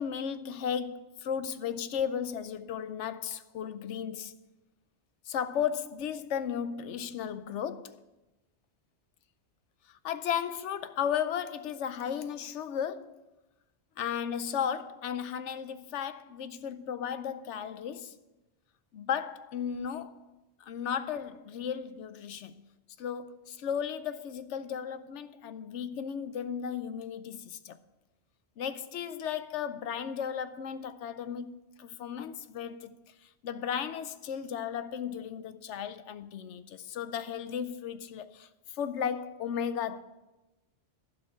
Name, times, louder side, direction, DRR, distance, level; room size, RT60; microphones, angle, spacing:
voice 1, 0.0-4.3 5.3-8.0 10.0-13.2 14.0-18.2 18.9-20.2 20.6-22.5 23.0-27.8 28.6-32.9 33.4-38.5 38.7-40.0, left 8 dB, 85° left, 1.0 m, -35 dB
11.5 x 5.2 x 8.1 m
omnidirectional pair, 1.2 m